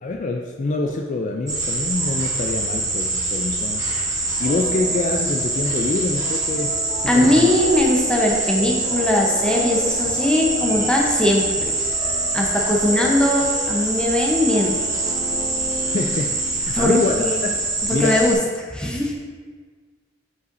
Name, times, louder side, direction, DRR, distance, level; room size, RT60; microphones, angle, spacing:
voice 1, 0.0-3.8 4.4-6.8 7.1-7.5 15.9-16.3 16.5-17.5 17.9-18.2, left 3 dB, 40° left, 2 dB, 0.3 m, -25 dB
sound 1, 1.5-18.3, right 2 dB, 15° right, 1.4 m, -24 dB
sound 2, 4.4-16.8, left 1 dB, 85° left, 1.4 m, -35 dB
voice 2, 7.1-11.7 12.3-14.7 16.7-17.3 17.9-19.1, left 1 dB, 5° left, -2 dB, 0.8 m, -20 dB
7.9 x 5.4 x 2.6 m, 1.5 s
head